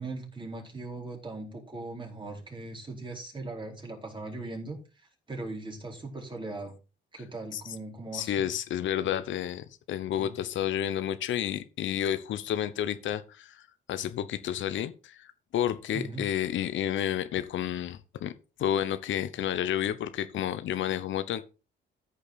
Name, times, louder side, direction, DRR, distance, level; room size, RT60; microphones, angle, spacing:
voice 1, 0.0-6.7 7.1-8.5 10.2-10.4 15.9-16.2, right 2 dB, 25° right, 4.1 m, -39 dB
voice 2, 8.1-13.6 13.9-15.3 15.5-18.3 18.6-21.4, left 10 dB, 75° left, 0.9 m, -30 dB
14.0 x 5.4 x 4.1 m
cardioid pair, 90°, 20 cm